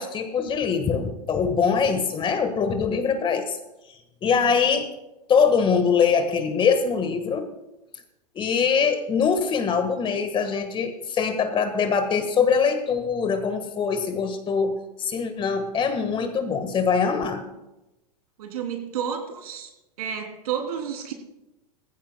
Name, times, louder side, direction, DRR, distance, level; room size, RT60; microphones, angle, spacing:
voice 1, 0.0-3.6 4.2-4.9 5.3-7.5 8.3-14.7 15.0-17.4, left 6 dB, 25° left, 8 dB, 1.4 m, -23 dB
voice 2, 18.4-19.7 20.0-21.1, right 8 dB, 70° right, 3 dB, 3.0 m, -31 dB
18.0 x 15.5 x 2.2 m, 0.97 s
hypercardioid pair, 105°, 20 cm